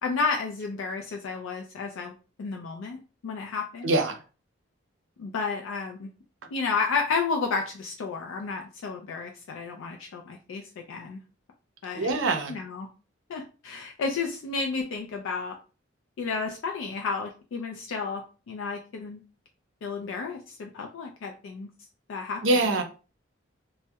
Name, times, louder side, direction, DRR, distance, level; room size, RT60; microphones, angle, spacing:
voice 1, 0.0-2.1 2.4-3.9 5.2-6.1 6.5-11.2 11.8-12.2 12.5-12.9 13.3-15.6 16.2-19.2 19.8-21.7 22.1-22.6, left 4 dB, 85° left, 0.3 m, -32 dB
voice 2, 3.8-4.2 11.9-12.6 22.4-22.8, right 2 dB, 75° right, 0.5 m, -24 dB
2.2 x 2.0 x 2.7 m
head